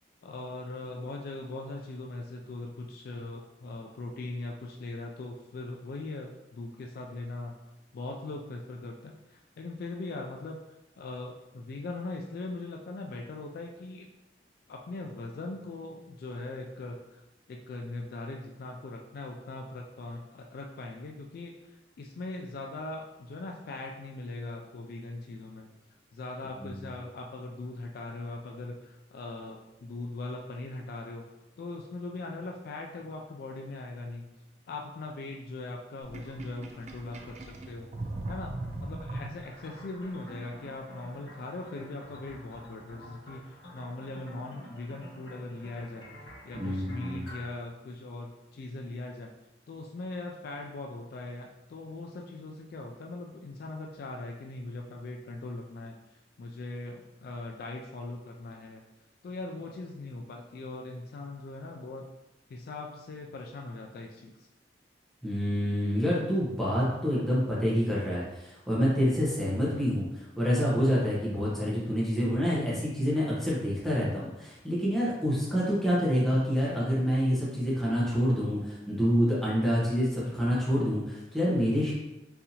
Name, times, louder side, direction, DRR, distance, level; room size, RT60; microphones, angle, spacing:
voice 1, 0.2-7.6 7.9-14.1 14.7-17.2 17.5-25.7 26.1-31.3 31.6-34.4 34.7-37.9 38.3-38.5 38.8-49.3 49.7-56.0 56.4-58.8 59.2-62.1 62.5-64.5, left 2 dB, 60° left, 1 dB, 0.3 m, -40 dB
Sink (filling or washing), 36.0-39.8, right 2 dB, 40° right, 0.4 m, -39 dB
sound 1, 39.4-47.5, equal, 80° left, 1.5 m, -49 dB
voice 2, 46.5-47.3 65.2-81.9, equal, ahead, -7 dB, 0.9 m, -27 dB
3.9 x 2.7 x 2.8 m, 0.96 s
head